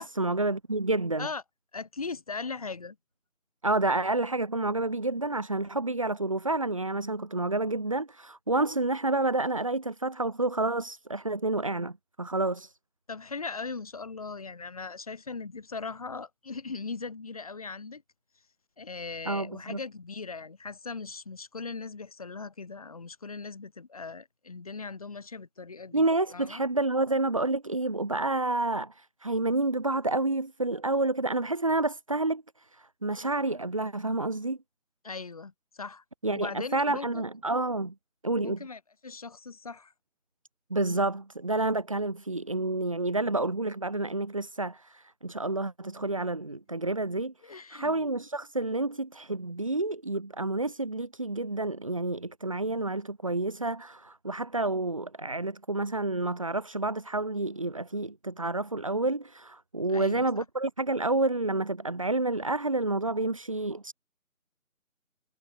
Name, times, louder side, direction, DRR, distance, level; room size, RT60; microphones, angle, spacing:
voice 1, 0.0-1.3 3.6-12.7 19.3-19.8 25.9-34.6 36.2-37.9 38.2-38.6 40.7-63.9, right 2 dB, 25° right, 1.8 m, -29 dB
voice 2, 1.7-3.0 13.1-18.0 18.8-26.0 26.3-26.6 35.0-36.0 36.3-37.2 38.4-39.9 47.4-47.9 59.9-60.2, left 4 dB, 25° left, 4.1 m, -39 dB
figure-of-eight pair, 175°, 42 cm